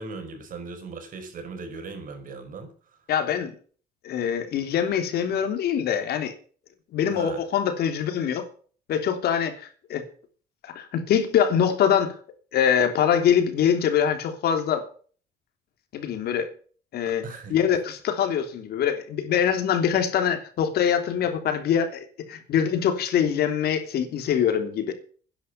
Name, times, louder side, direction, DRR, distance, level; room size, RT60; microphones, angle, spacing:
voice 1, 0.0-2.7 7.1-7.4 17.1-17.6, right 4 dB, 55° right, 5.1 m, -38 dB
voice 2, 3.1-3.5 4.0-6.3 6.9-8.4 8.9-10.0 10.6-12.1 12.5-14.9 15.9-16.5 16.9-17.2 17.5-24.9, left 8 dB, 70° left, 3.2 m, -24 dB
11.5 x 10.5 x 6.7 m
cardioid pair, 110°, 17 cm